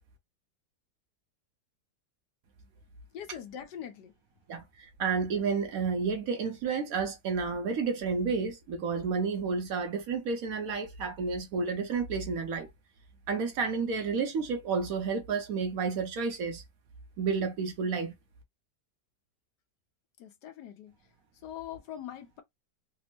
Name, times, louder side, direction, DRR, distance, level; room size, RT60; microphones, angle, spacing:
voice 1, 3.1-4.1 20.2-20.9 21.4-22.4, left 10 dB, 75° left, 1.3 m, -42 dB
voice 2, 5.0-12.7 13.3-16.6 17.2-18.1, right 5 dB, 65° right, 1.0 m, -31 dB
3.4 x 2.0 x 2.8 m
omnidirectional pair, 1.8 m